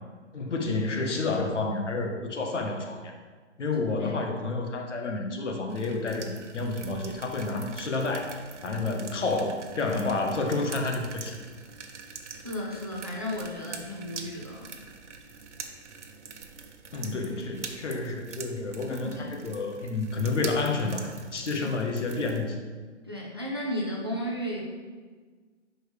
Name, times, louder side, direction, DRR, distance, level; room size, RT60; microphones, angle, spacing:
voice 1, 0.3-3.1 3.6-8.3 8.6-11.4 16.9-22.6, left 3 dB, 70° left, 3 dB, 1.4 m, -30 dB
sound 1, 5.7-22.5, right 5 dB, 70° right, 1.0 m, -44 dB
voice 2, 12.4-14.7 17.0-17.1 19.0-19.2 23.1-24.6, equal, 20° right, -3 dB, 0.5 m, -34 dB
11.5 x 4.6 x 3.4 m, 1.5 s
hypercardioid pair, 180°, 37 cm